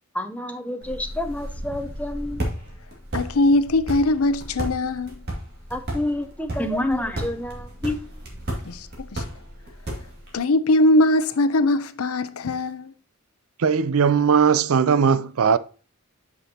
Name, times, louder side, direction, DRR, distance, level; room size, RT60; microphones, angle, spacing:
voice 1, 0.1-2.5 5.7-8.0, left 1 dB, 5° left, 0.7 m, -28 dB
sound 1, 0.8-10.4, right 1 dB, 50° right, 2.2 m, -34 dB
voice 2, 3.1-5.2 8.7-9.2 10.3-12.9, left 1 dB, 85° left, 0.6 m, -21 dB
voice 3, 13.6-15.6, right 6 dB, 80° right, 0.5 m, -19 dB
8.2 x 6.1 x 2.9 m
head